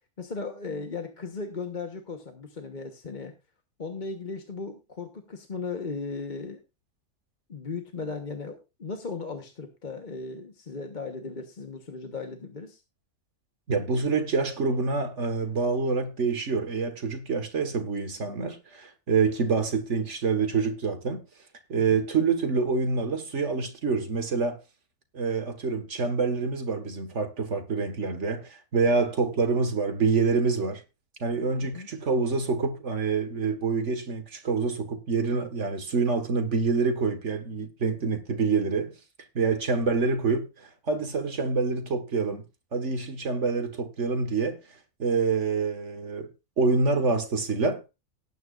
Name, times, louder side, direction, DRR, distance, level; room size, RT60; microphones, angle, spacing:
voice 1, 0.2-3.3 3.8-6.6 7.5-12.8 31.6-31.9, left 4 dB, 35° left, 1.2 m, -37 dB
voice 2, 13.7-21.2 21.7-24.6 25.1-30.8 31.2-38.9 39.4-42.4 42.7-44.6 45.0-46.3 46.6-47.8, right 4 dB, 50° right, 1.9 m, -26 dB
18.5 x 9.4 x 2.5 m
omnidirectional pair, 1.6 m